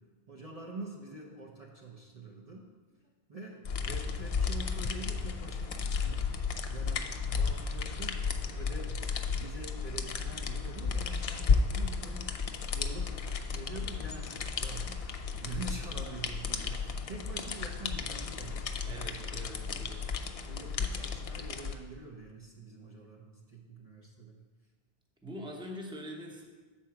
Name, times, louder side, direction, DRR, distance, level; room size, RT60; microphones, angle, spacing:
voice 1, 0.3-2.7 3.3-6.4 6.7-9.0 9.4-19.5 19.9-20.0 20.4-24.4, right 2 dB, 40° right, -2 dB, 0.7 m, -46 dB
sound 1, 3.6-21.7, left 5 dB, 50° left, 0.4 m, -33 dB
voice 2, 18.9-20.1 25.2-26.4, equal, 5° right, 0 dB, 0.8 m, -44 dB
7.7 x 4.4 x 5.8 m, 1.4 s
omnidirectional pair, 1.0 m